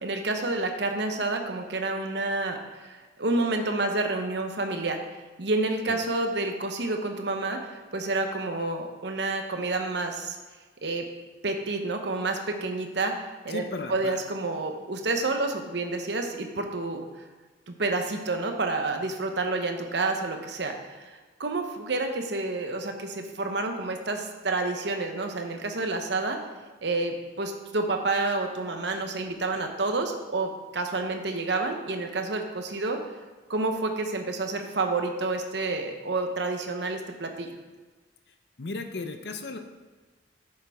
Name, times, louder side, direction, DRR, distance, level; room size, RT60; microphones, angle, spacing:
voice 1, 0.0-5.0 5.4-10.4 10.8-11.1 11.4-13.1 13.4-13.6 13.9-17.1 17.7-26.4 26.8-33.0 33.5-37.5, right 2 dB, 60° right, 4 dB, 0.9 m, -29 dB
voice 2, 13.5-14.2 38.6-39.6, left 3 dB, 55° left, 6 dB, 0.7 m, -35 dB
10.0 x 6.5 x 3.6 m, 1.3 s
head